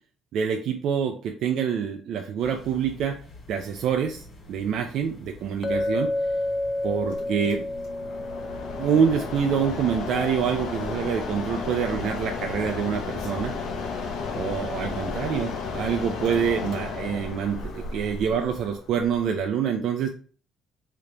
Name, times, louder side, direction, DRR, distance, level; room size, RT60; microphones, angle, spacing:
voice 1, 0.3-3.2 3.5-6.1 6.8-7.7 8.8-13.5 14.3-20.1, right 7 dB, 70° right, 4 dB, 0.4 m, -26 dB
sound 1, 2.4-18.7, left 2 dB, 45° left, 1.5 m, -47 dB
Chink clink, 5.6-9.8, left 1 dB, 30° left, 0.5 m, -30 dB
Mechanisms, 7.1-19.5, left 4 dB, 80° left, 0.8 m, -33 dB
3.8 x 2.9 x 3.3 m, 0.41 s
cardioid pair, 95°, 0 cm